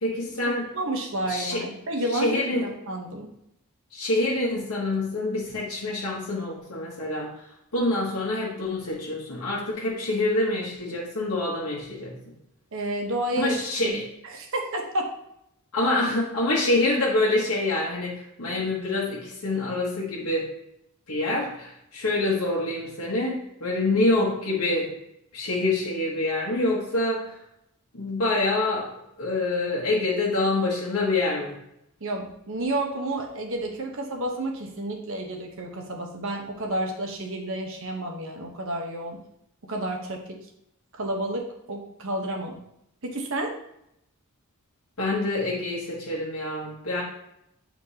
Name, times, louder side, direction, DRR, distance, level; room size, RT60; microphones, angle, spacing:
voice 1, 0.0-0.7 1.3-1.6 2.1-2.7 3.9-7.3 7.7-12.2 13.4-14.0 15.7-20.5 21.1-24.9 25.3-27.3 27.9-28.9 29.2-31.6 45.0-47.0, left 2 dB, 75° left, -5 dB, 1.3 m, -26 dB
voice 2, 0.7-3.3 12.7-13.5 13.8-14.0 14.3-15.1 32.0-39.2 39.7-40.4 40.9-42.6 43.0-43.6, right 1 dB, 60° right, 1 dB, 1.0 m, -30 dB
8.2 x 4.3 x 2.8 m, 0.79 s
head